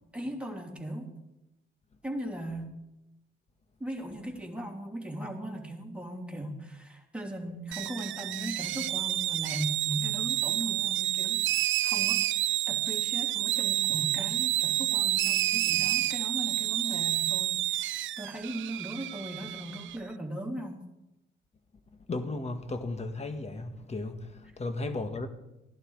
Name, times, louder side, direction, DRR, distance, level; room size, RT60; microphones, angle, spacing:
voice 1, 0.1-1.1 2.0-2.7 3.8-12.2 12.7-20.8, right 1 dB, 5° right, 3.2 m, -38 dB
sound 1, 7.7-20.0, right 14 dB, 75° right, 0.5 m, -29 dB
voice 2, 22.1-25.3, left 2 dB, 35° left, 1.8 m, -35 dB
16.5 x 11.0 x 4.9 m
cardioid pair, 90°, 20 cm